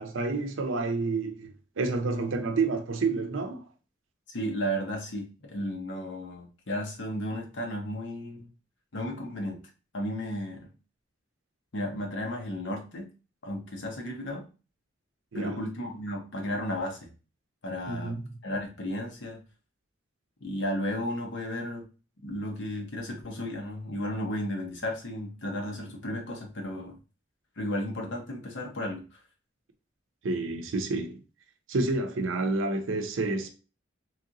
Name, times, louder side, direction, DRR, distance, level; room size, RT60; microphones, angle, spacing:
voice 1, 0.0-3.6 15.3-15.6 17.9-18.2 30.2-31.2 31.7-33.5, right 3 dB, 85° right, 0.6 m, -29 dB
voice 2, 4.3-8.5 8.9-9.6 9.9-10.7 11.7-13.1 13.4-14.5 15.3-17.1 17.6-18.2 18.4-19.4 20.4-21.9 22.2-27.0 27.6-29.0, equal, 70° left, 0.9 m, -34 dB
3.1 x 2.8 x 2.5 m
head